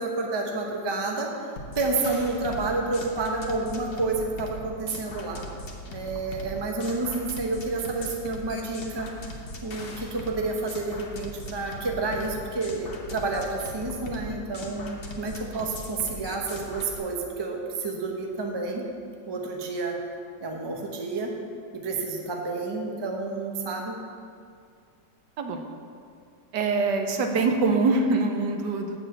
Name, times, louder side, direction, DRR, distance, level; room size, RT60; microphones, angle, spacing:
voice 1, 0.0-1.3 1.8-5.4 5.9-9.1 9.6-18.8 19.3-20.0 20.4-21.3 21.7-24.0, right 3 dB, 25° right, 1 dB, 0.6 m, -30 dB
sound 1, 1.6-17.0, left 1 dB, 40° left, 0.9 m, -40 dB
voice 2, 26.5-29.0, right 3 dB, 75° right, 4 dB, 1.4 m, -24 dB
8.5 x 5.0 x 7.7 m, 2.2 s
omnidirectional pair, 1.9 m